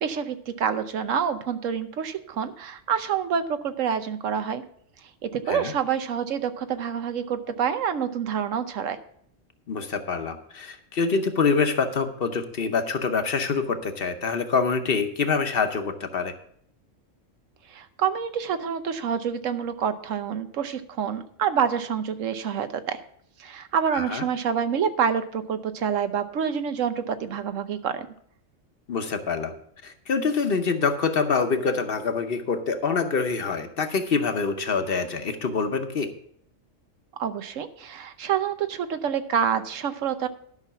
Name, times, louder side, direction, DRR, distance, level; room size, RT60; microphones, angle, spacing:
voice 1, 0.0-4.6 5.2-9.0 17.7-23.0 23.4-28.1 37.2-40.3, right 7 dB, 85° right, 10 dB, 1.2 m, -27 dB
voice 2, 9.7-16.3 23.9-24.2 28.9-29.5 29.8-36.1, left 5 dB, 50° left, 7 dB, 1.0 m, -25 dB
12.0 x 5.8 x 5.8 m, 0.65 s
omnidirectional pair, 1.3 m